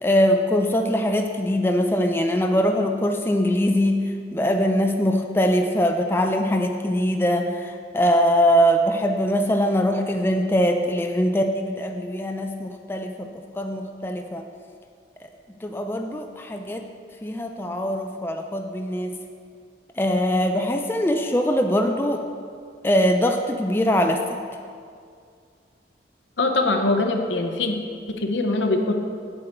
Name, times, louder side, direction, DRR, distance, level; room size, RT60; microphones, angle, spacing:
voice 1, 0.0-14.4 15.2-15.3 15.6-16.9 17.2-19.2 20.0-22.2 22.8-24.2, equal, 10° left, 4 dB, 0.4 m, -22 dB
voice 2, 26.4-27.8 28.1-28.9, left 2 dB, 80° left, 4 dB, 0.9 m, -22 dB
7.9 x 7.6 x 4.4 m, 2.2 s
head